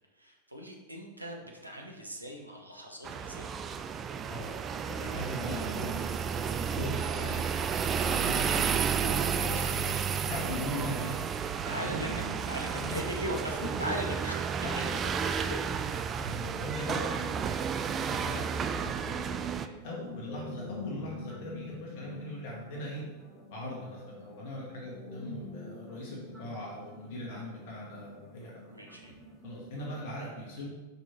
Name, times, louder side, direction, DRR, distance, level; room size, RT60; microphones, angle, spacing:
voice 1, 0.1-3.6 9.5-9.8 11.6-14.4 28.7-29.2, equal, 85° right, 0 dB, 1.0 m, -39 dB
sound 1, 3.0-19.7, right 7 dB, 25° right, 0.3 m, -32 dB
voice 2, 4.3-4.6 4.9-10.0 10.2-11.1 11.7-12.3 12.8-13.1 14.6-14.9 15.2-18.4 18.7-23.0 23.5-28.5 29.4-30.7, left 1 dB, 50° left, -4 dB, 1.3 m, -40 dB
sound 2, 19.7-30.0, left 2 dB, ahead, 1.5 m, -47 dB
5.2 x 4.7 x 4.3 m, 1.2 s
figure-of-eight pair, 90°, 0 cm